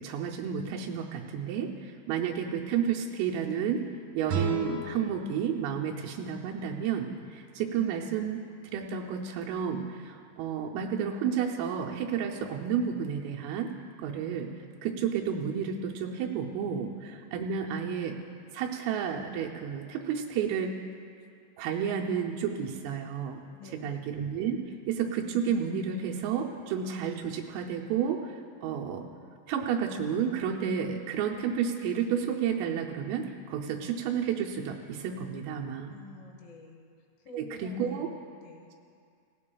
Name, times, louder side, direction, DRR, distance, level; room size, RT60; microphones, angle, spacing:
voice 1, 0.0-3.8 4.1-8.4 8.7-13.7 14.0-14.5 14.8-18.2 18.5-20.7 21.6-23.4 23.8-24.6 24.9-29.0 29.5-35.9 37.3-38.1, right 7 dB, 90° right, -1 dB, 3.4 m, -31 dB
sound 1, 4.3-7.3, right 4 dB, 70° right, 1.9 m, -36 dB
voice 2, 23.6-24.1 35.9-36.8 37.3-38.7, left 4 dB, 75° left, 2 dB, 3.6 m, -49 dB
17.5 x 16.0 x 2.3 m, 2.3 s
omnidirectional pair, 5.8 m